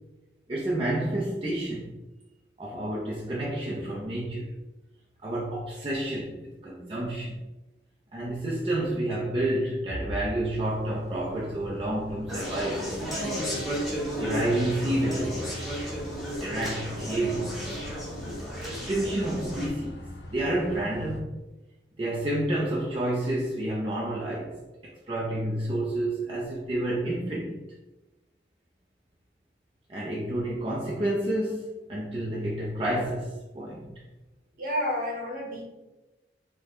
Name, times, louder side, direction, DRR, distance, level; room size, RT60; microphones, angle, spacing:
voice 1, 0.5-1.9 2.6-4.5 5.2-7.4 8.1-12.9 14.2-15.5 16.4-17.6 18.6-21.3 22.0-24.6 24.8-27.6 29.9-33.9, right 1 dB, 30° right, -5 dB, 0.6 m, -29 dB
sound 1, 10.6-21.2, left 1 dB, 70° left, 0.6 m, -43 dB
Conversation, 12.3-19.7, equal, ahead, 1.1 m, -34 dB
voice 2, 34.6-35.7, equal, 50° right, -2 dB, 1.3 m, -30 dB
5.9 x 2.2 x 3.5 m, 1.1 s
head